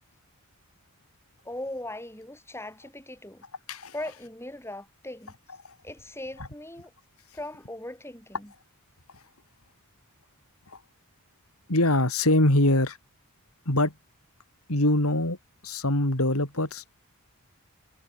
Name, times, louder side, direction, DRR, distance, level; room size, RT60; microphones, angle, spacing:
voice 1, 1.5-3.4 3.9-5.3 5.8-6.9 7.3-8.5, left 1 dB, 10° left, 5.5 m, -39 dB
voice 2, 11.7-13.0 13.6-13.9 14.7-15.4 15.6-17.0, left 1 dB, 80° left, 5.0 m, -23 dB
head